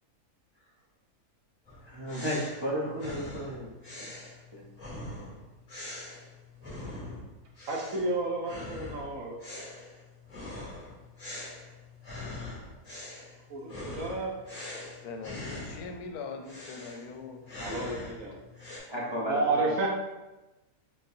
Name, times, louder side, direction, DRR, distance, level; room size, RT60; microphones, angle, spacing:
sound 1, 1.7-7.3 7.6-8.1 8.4-16.0 16.4-18.8, left 2 dB, 25° left, 1.4 m, -43 dB
voice 1, 1.9-3.7 4.0-4.1 4.5-4.6 18.9-19.8, equal, 30° right, -7 dB, 0.5 m, -33 dB
voice 2, 7.7-9.4 13.5-14.3 17.6-18.3 19.0-19.9, right 2 dB, 65° right, -1 dB, 1.1 m, -31 dB
voice 3, 15.0-18.2, left 4 dB, 85° left, 5 dB, 1.1 m, -42 dB
4.0 x 3.8 x 2.6 m, 1.0 s
omnidirectional pair, 1.5 m